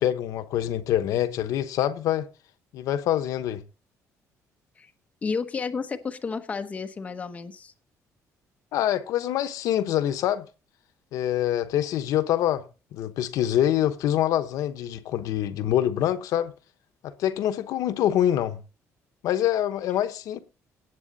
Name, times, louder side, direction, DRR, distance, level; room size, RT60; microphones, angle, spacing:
voice 1, 0.0-2.3 2.7-3.6 8.7-10.5 11.1-12.6 12.9-16.5 17.0-18.6 19.2-20.4, left 11 dB, 75° left, 1.0 m, -25 dB
voice 2, 5.2-7.7, left 5 dB, 25° left, 1.1 m, -31 dB
17.5 x 8.2 x 4.1 m
cardioid pair, 165°, 6 cm